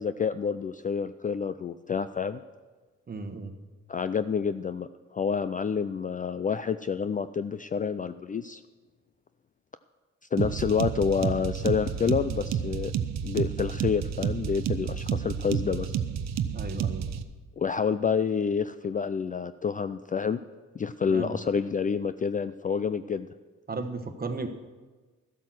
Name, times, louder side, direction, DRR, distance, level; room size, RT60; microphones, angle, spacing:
voice 1, 0.0-2.4 3.9-4.9 5.1-8.6 10.3-12.9 13.2-15.9 17.6-20.4 20.7-23.3, left 6 dB, 25° left, 12 dB, 0.4 m, -28 dB
voice 2, 3.1-3.5 16.5-17.0 21.0-21.4 23.7-24.5, right 3 dB, 30° right, 8 dB, 1.2 m, -35 dB
sound 1, 10.4-17.2, right 8 dB, 60° right, 0.8 m, -30 dB
13.0 x 8.3 x 6.2 m, 1.3 s
cardioid pair, 90°, 30 cm